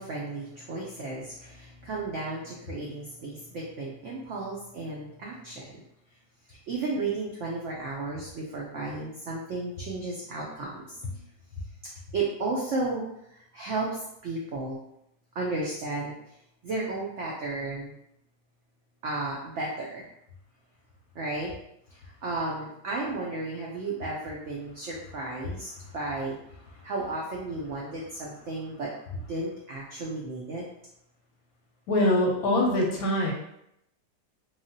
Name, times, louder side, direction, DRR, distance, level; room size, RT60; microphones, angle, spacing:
voice 1, 0.0-5.8 6.5-10.9 12.1-13.0 13.3-13.9 14.2-14.8 15.4-16.1 16.6-17.9 19.0-20.0 21.2-21.5 21.9-26.4 26.8-30.6, right 3 dB, 90° right, -3 dB, 0.6 m, -33 dB
voice 2, 31.9-33.3, left 1 dB, 70° left, -1 dB, 0.9 m, -24 dB
3.2 x 2.3 x 2.6 m, 0.78 s
omnidirectional pair, 1.9 m